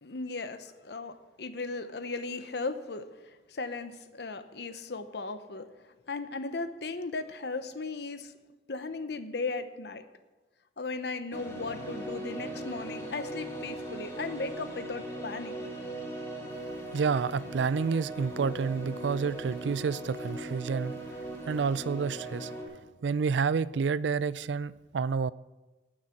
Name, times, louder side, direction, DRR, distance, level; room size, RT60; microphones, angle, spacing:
voice 1, 0.0-8.3 8.7-10.1 10.8-15.5, left 3 dB, 65° left, 0.9 m, -37 dB
sound 1, 11.3-22.6, right 1 dB, 15° left, 2.9 m, -39 dB
voice 2, 16.9-21.0 21.5-22.5 23.0-25.3, right 5 dB, 90° right, 0.4 m, -29 dB
18.0 x 6.6 x 5.9 m
head